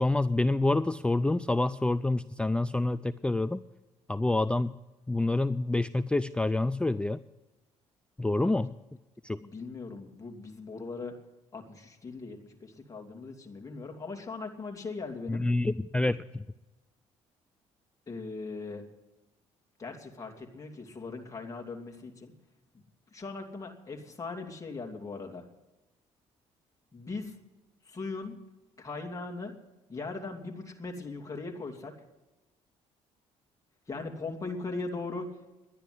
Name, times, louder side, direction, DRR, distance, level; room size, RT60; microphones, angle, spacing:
voice 1, 0.0-3.6 4.1-4.7 5.1-7.2 8.2-8.7 9.2-9.4 15.3-16.4, left 2 dB, 10° left, 14 dB, 0.4 m, -27 dB
voice 2, 8.4-8.7 9.4-11.2 11.5-15.5 18.1-18.8 19.8-22.3 22.7-22.8 23.1-25.4 26.9-27.4 27.8-28.4 28.8-29.5 29.9-31.9 33.9-35.3, left 3 dB, 25° left, 2 dB, 2.6 m, -39 dB
11.5 x 10.0 x 9.3 m, 1.0 s
cardioid pair, 90°, 13 cm